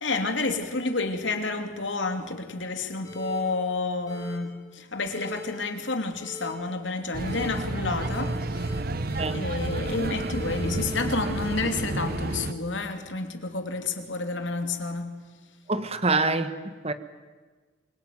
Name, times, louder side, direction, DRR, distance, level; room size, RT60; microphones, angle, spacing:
voice 1, 0.0-8.6 9.3-15.2, left 3 dB, 70° left, 2.9 m, -30 dB
sound 1, 3.0-3.4 4.1-4.4 5.1-5.5 6.2-6.5 7.2-7.6 8.0-8.8 9.0-12.8, left 2 dB, 20° left, 7.8 m, -41 dB
sound 2, 7.1-12.5, right 2 dB, 50° right, 1.0 m, -31 dB
voice 2, 15.7-16.9, right 3 dB, 30° right, 1.5 m, -26 dB
25.5 x 23.0 x 9.5 m
head